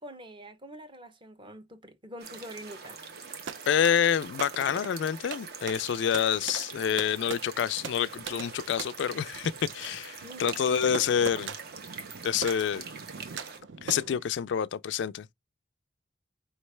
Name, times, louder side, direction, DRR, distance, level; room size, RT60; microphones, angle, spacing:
voice 1, 0.0-3.0 10.2-10.6, equal, 25° right, 0.8 m, -45 dB
sound 1, 2.2-13.6, right 5 dB, 55° right, 1.1 m, -44 dB
sound 2, 3.1-14.3, right 5 dB, 70° right, 0.6 m, -42 dB
voice 2, 3.7-11.5 12.2-12.8 13.8-15.3, left 8 dB, 65° left, 0.3 m, -27 dB
4.9 x 3.1 x 3.1 m
head